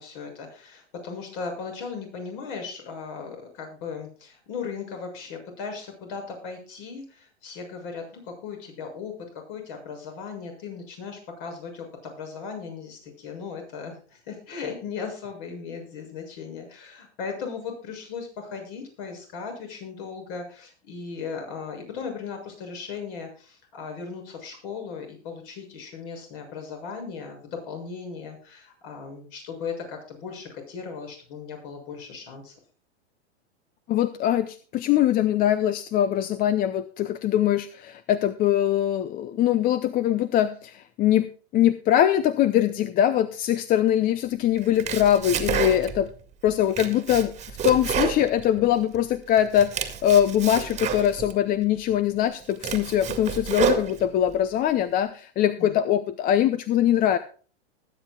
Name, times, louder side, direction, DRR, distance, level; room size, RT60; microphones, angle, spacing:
voice 1, 0.0-9.1 9.5-27.4 27.7-32.5 55.6-55.8, left 5 dB, 50° left, 4 dB, 6.8 m, -37 dB
voice 2, 33.9-41.3 41.5-46.1 46.4-47.3 47.6-57.2, left 11 dB, 25° left, 14 dB, 0.6 m, -22 dB
Domestic sounds home sounds, 44.6-46.1 46.5-49.0 49.4-51.4 51.9-52.0 52.4-54.3, right 7 dB, 20° right, 2.0 m, -29 dB
20.0 x 9.9 x 2.3 m, 0.40 s
hypercardioid pair, 125°, 35 cm